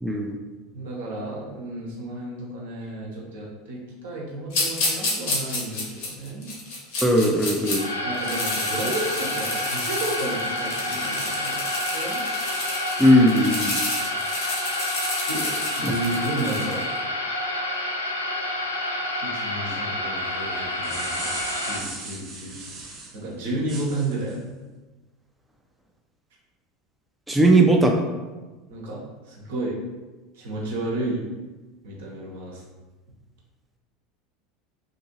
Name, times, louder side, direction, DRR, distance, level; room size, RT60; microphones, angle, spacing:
voice 1, 0.0-0.3 7.0-7.8 13.0-13.8 27.3-28.0, right 1 dB, 5° right, 0 dB, 0.4 m, -18 dB
voice 2, 0.7-6.5 8.0-12.2 15.3-16.9 19.2-22.7 23.1-24.4 28.7-29.8 30.3-31.2 31.8-32.6, right 2 dB, 70° right, -3 dB, 0.8 m, -32 dB
sound 1, 4.5-7.8 8.1-16.8, left 2 dB, 60° left, 0.9 m, -30 dB
sound 2, 7.6-21.8, left 1 dB, 85° left, 0.3 m, -29 dB
sound 3, 20.6-23.2 23.7-24.4, right 3 dB, 40° right, 0.7 m, -37 dB
2.8 x 2.6 x 2.8 m, 1.2 s
figure-of-eight pair, 75°, 0 cm